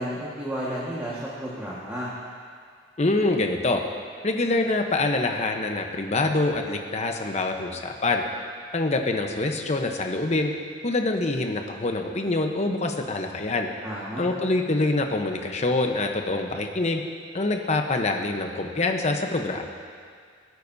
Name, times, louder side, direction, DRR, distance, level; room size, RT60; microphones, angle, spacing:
voice 1, 0.0-2.1 13.8-14.3, equal, 10° right, -8 dB, 1.6 m, -32 dB
voice 2, 3.0-3.8 4.2-8.2 8.7-10.5 10.8-13.7 14.2-17.0 17.3-19.6, left 2 dB, 40° left, 4 dB, 0.9 m, -25 dB
21.0 x 9.3 x 2.7 m, 2.1 s
head